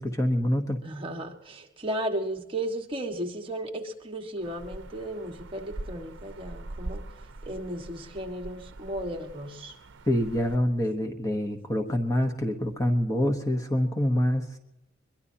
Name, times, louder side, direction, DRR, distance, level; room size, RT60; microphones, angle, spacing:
voice 1, 0.0-0.8 10.1-14.6, left 1 dB, 15° left, 5 dB, 1.1 m, -26 dB
voice 2, 0.8-7.0 7.4-9.7, right 1 dB, 25° right, 1 dB, 1.7 m, -35 dB
sound 1, 4.4-10.6, right 2 dB, 65° right, 0.8 m, -42 dB
22.5 x 22.5 x 2.8 m, 0.93 s
head